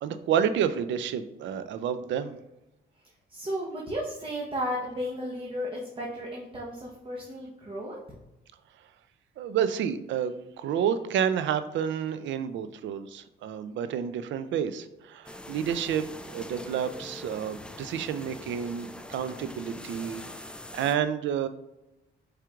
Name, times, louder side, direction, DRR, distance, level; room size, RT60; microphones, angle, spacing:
voice 1, 0.0-2.4 9.4-20.5 20.7-21.5, right 8 dB, 70° right, 12 dB, 0.4 m, -30 dB
voice 2, 3.3-8.0, equal, 25° right, -3 dB, 1.0 m, -34 dB
sound 1, 15.2-20.9, left 1 dB, 5° left, 0.3 m, -43 dB
4.8 x 4.4 x 2.4 m, 0.93 s
cardioid pair, 90°, 20 cm